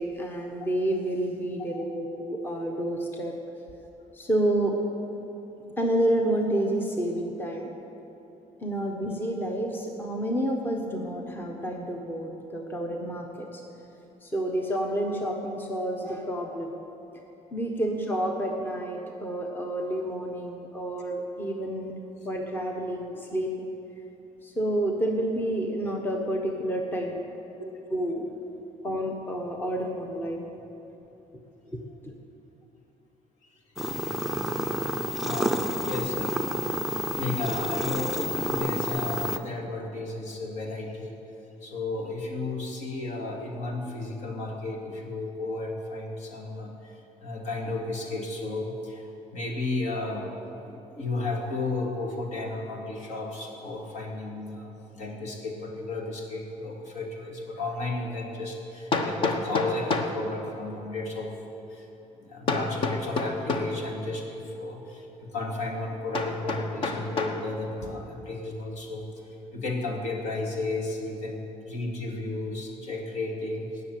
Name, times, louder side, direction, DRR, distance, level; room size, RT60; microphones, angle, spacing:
voice 1, 0.0-3.3 4.1-4.8 5.8-7.7 8.6-13.6 14.2-16.7 17.5-21.9 22.2-23.7 24.4-27.2 27.9-28.3 28.8-30.5 31.7-32.1, right 1 dB, 15° left, 2 dB, 1.2 m, -29 dB
sound 1, 33.8-39.4, equal, ahead, 0.6 m, -29 dB
voice 2, 35.2-36.4 37.2-41.1 41.6-46.9 47.2-49.0 49.3-54.7 55.0-61.3 61.7-61.8 62.2-65.0 65.3-69.0 69.5-73.8, left 2 dB, 65° left, 0 dB, 2.5 m, -33 dB
Hammer, 57.3-57.4 58.9-60.2 62.5-63.8 66.1-67.4, left 3 dB, 45° left, 1.1 m, -28 dB
18.0 x 6.8 x 9.3 m, 3.0 s
cardioid pair, 150°, 13 cm